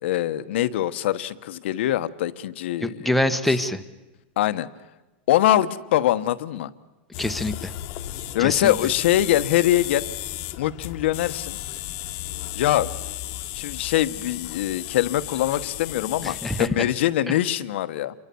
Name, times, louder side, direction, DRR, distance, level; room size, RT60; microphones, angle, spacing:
voice 1, 0.0-3.2 4.4-4.7 5.3-6.7 8.3-10.1 10.6-11.6 12.5-12.9 13.5-18.1, left 13 dB, 70° left, 12 dB, 1.2 m, -23 dB
voice 2, 2.8-3.8 7.2-7.7 8.4-8.7 16.2-16.7, left 1 dB, ahead, 8 dB, 1.3 m, -25 dB
sound 1, 7.1-16.7, left 15 dB, 45° left, 1.3 m, -34 dB
28.5 x 24.0 x 7.1 m, 1.1 s
supercardioid pair, 150°, 6 cm